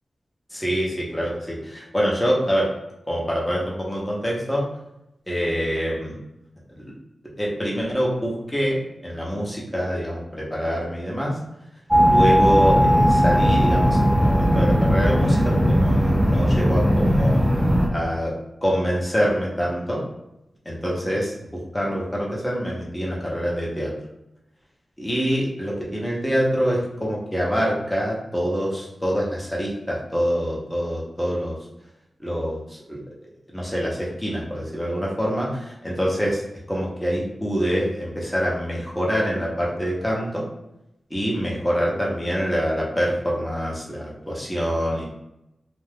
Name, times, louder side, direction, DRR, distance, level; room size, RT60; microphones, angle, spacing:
voice 1, 0.5-2.7 3.1-4.6 5.3-6.2 6.8-6.9 7.4-11.4 12.0-17.4 17.9-18.3 18.6-20.0 20.6-23.9 25.0-31.6 32.2-33.0 33.5-36.4 36.7-40.4 41.1-45.0, equal, 10° left, -4 dB, 0.9 m, -25 dB
sound 1, 11.9-17.9, equal, 5° right, 0.5 m, -18 dB
2.5 x 2.2 x 3.4 m, 0.87 s
wide cardioid pair, 90°, 0 cm